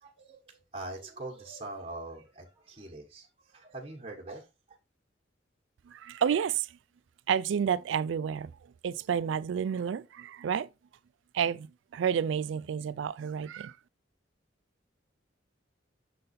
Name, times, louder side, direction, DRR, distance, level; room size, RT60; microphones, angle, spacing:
voice 1, 0.0-4.8, right 2 dB, 30° right, 1.2 m, -43 dB
voice 2, 5.9-6.8 7.3-8.5 8.8-10.7 11.3-13.8, right 7 dB, 90° right, 0.3 m, -30 dB
6.5 x 3.8 x 4.1 m
head